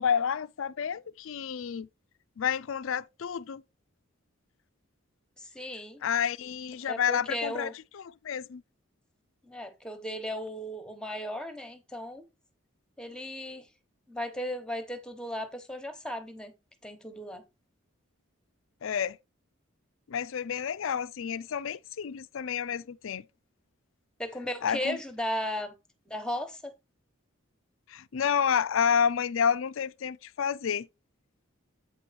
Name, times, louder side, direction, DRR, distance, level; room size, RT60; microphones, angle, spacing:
voice 1, 0.0-1.9 2.4-3.6 6.0-8.6 18.8-19.2 20.1-23.2 24.6-25.0 27.9-30.9, left 7 dB, 70° left, 0.4 m, -29 dB
voice 2, 5.4-6.0 6.9-7.7 9.5-12.2 13.0-13.7 14.1-16.5 16.8-17.4 24.2-25.7 26.1-26.7, equal, 5° left, 1.1 m, -36 dB
8.4 x 4.6 x 4.1 m
head